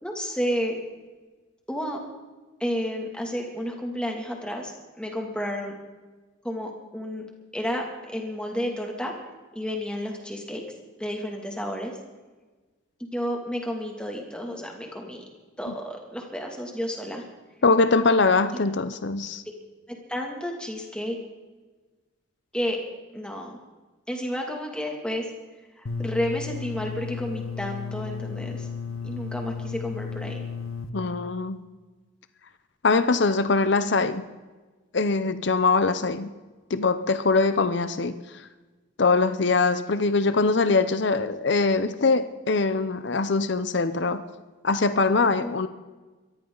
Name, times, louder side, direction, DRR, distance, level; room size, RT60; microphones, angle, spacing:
voice 1, 0.0-0.8 1.7-2.0 2.6-5.7 6.4-7.2 7.5-9.1 9.5-10.6 11.0-12.0 13.0-15.3 15.6-17.2 19.9-21.2 22.5-22.8 23.1-23.6 24.1-25.3 25.8-28.7 29.0-30.4 45.4-45.5, equal, 5° left, 1 dB, 2.4 m, -31 dB
voice 2, 17.6-19.4 30.9-31.6 32.8-34.3 34.9-36.3 36.7-38.5 39.0-44.2 44.6-45.7, left 3 dB, 60° left, 11 dB, 0.7 m, -22 dB
sound 1, 25.9-30.9, left 5 dB, 85° left, 1.0 m, -34 dB
23.0 x 14.0 x 3.9 m, 1.3 s
head